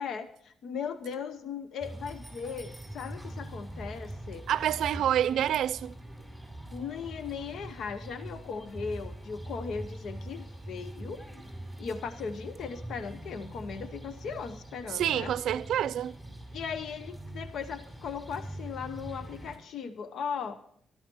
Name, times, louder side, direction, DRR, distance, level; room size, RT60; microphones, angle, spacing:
voice 1, 0.0-4.5 6.7-11.3 11.8-15.3 16.5-20.6, left 6 dB, 70° left, 0.8 m, -38 dB
sound 1, 1.8-19.6, right 1 dB, 5° left, 5.1 m, -43 dB
voice 2, 4.5-5.9 14.9-16.1, right 11 dB, 75° right, 0.4 m, -27 dB
13.0 x 12.0 x 4.5 m
cardioid pair, 90°, 0 cm